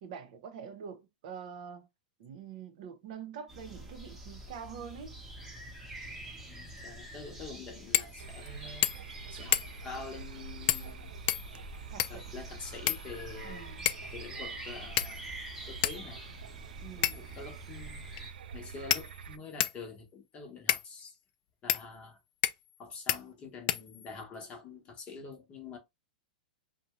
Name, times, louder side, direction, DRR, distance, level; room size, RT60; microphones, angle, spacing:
voice 1, 0.0-1.9 2.2-5.2 11.9-12.4 13.4-13.9 16.8-17.3, right 7 dB, 55° right, 0.8 m, -45 dB
sound 1, 3.5-18.3, right 1 dB, 5° right, 0.9 m, -47 dB
voice 2, 6.5-8.9 9.3-11.1 12.1-13.7 14.1-15.2 15.6-16.2 17.1-18.0 18.5-21.2 21.6-22.2 22.8-25.8, left 4 dB, 25° left, 0.9 m, -46 dB
sound 2, 7.9-8.1 8.5-8.6 8.8-9.1 9.5-9.9 10.7-10.9 11.3-12.3 12.9-13.4 13.9-14.1 15.0-15.4 15.8-16.0 17.0-17.4 18.2-18.3 18.9-19.8 20.7-20.9 21.7-21.8 22.4-22.8 23.1-23.2 23.7-24.2, left 14 dB, 45° left, 0.3 m, -30 dB
sound 3, 8.2-19.4, right 6 dB, 85° right, 0.4 m, -47 dB
2.6 x 2.2 x 3.0 m
hypercardioid pair, 140°, 5 cm